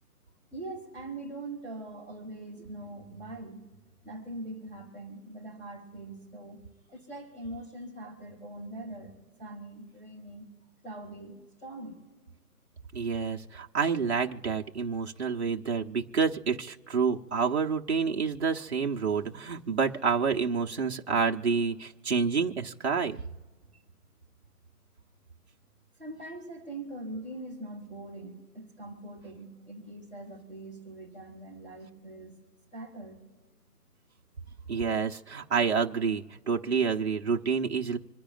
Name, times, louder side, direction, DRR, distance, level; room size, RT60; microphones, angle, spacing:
voice 1, 0.5-3.6 4.0-6.6 6.9-10.5 10.8-12.0 26.0-32.4 32.7-33.2, right 2 dB, 10° left, -3 dB, 3.7 m, -42 dB
voice 2, 12.9-23.2 34.7-38.0, right 5 dB, 45° right, 0 dB, 1.2 m, -28 dB
27.5 x 10.0 x 2.5 m, 1.5 s
figure-of-eight pair, 160°, 47 cm